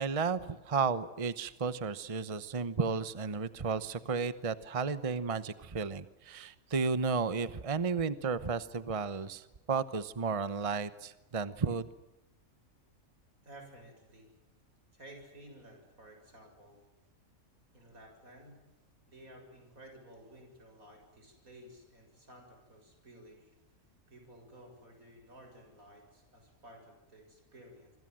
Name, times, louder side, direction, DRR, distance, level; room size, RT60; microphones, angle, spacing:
voice 1, 0.0-11.9, right 5 dB, 30° right, 14 dB, 0.9 m, -33 dB
voice 2, 13.4-14.3 14.9-16.8 17.7-18.6 19.1-23.5 24.1-27.9, right 1 dB, 85° right, 4 dB, 7.4 m, -54 dB
27.0 x 25.5 x 7.7 m, 1.0 s
omnidirectional pair, 1.4 m